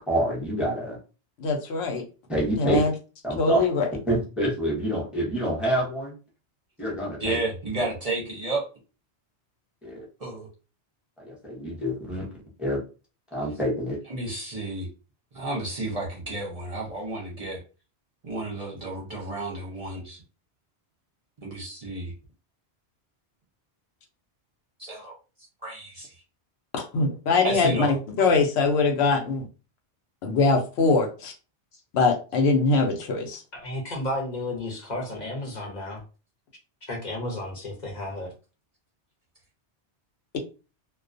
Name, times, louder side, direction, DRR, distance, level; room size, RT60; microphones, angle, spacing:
voice 1, 0.1-1.0 2.3-2.8 3.2-3.6 4.1-6.2 6.8-7.4 9.8-10.0 11.2-12.3 12.6-12.8 13.3-14.0, right 1 dB, ahead, -4 dB, 0.6 m, -27 dB
voice 2, 1.4-2.0 2.6-2.9 3.4-3.9 26.8-29.5 30.2-31.3 31.9-33.4, left 4 dB, 80° left, 3 dB, 0.9 m, -22 dB
voice 3, 7.2-8.6 10.2-10.5 14.1-14.9 15.3-17.6 18.2-20.2 21.4-22.1 24.8-25.1 25.6-26.1 27.4-27.9, right 2 dB, 40° right, -3 dB, 0.6 m, -31 dB
voice 4, 33.5-36.0 36.9-38.3, left 1 dB, 45° left, 0 dB, 0.8 m, -32 dB
2.3 x 2.2 x 2.5 m, 0.33 s
omnidirectional pair, 1.1 m